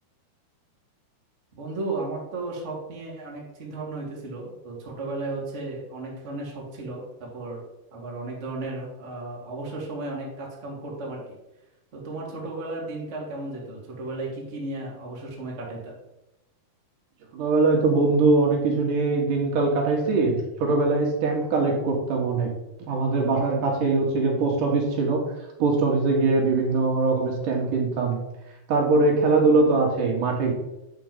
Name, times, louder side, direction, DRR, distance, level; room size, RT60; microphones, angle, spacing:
voice 1, 1.5-7.6 7.9-11.2 11.9-16.0, right 2 dB, 30° right, -3 dB, 1.5 m, -34 dB
voice 2, 17.3-22.5 22.8-25.2 25.6-28.2 28.7-30.5, right 3 dB, 65° right, 1 dB, 2.5 m, -22 dB
9.3 x 4.5 x 5.2 m, 0.92 s
omnidirectional pair, 4.6 m